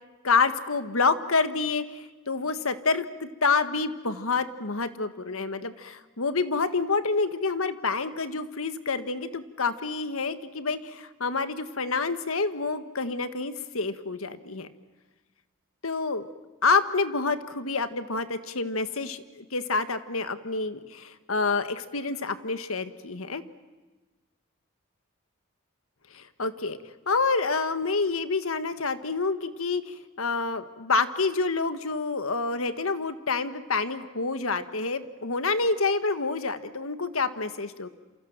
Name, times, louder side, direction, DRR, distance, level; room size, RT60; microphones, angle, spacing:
voice 1, 0.2-14.7 15.8-16.3 16.6-23.4 26.1-26.8 27.1-37.9, left 4 dB, 80° left, 11 dB, 1.6 m, -28 dB
28.5 x 28.0 x 7.4 m, 1.2 s
head